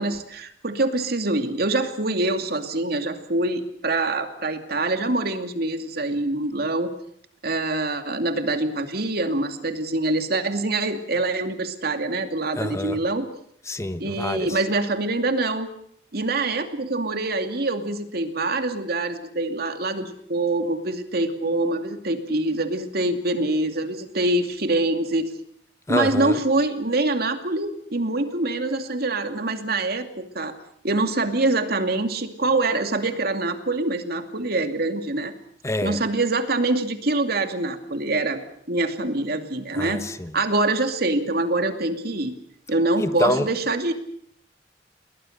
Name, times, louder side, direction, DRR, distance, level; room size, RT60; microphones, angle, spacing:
voice 1, 0.0-6.9 7.4-13.3 14.0-15.7 16.1-25.3 25.9-30.5 30.8-35.3 35.8-38.4 38.7-40.0 40.3-42.3 42.7-43.9, right 2 dB, 60° right, 2.6 m, -25 dB
voice 2, 12.6-13.0 13.7-14.6 25.9-26.4 35.6-36.0 39.7-40.3 43.0-43.5, left 1 dB, 15° left, 1.0 m, -26 dB
29.5 x 21.0 x 6.7 m
head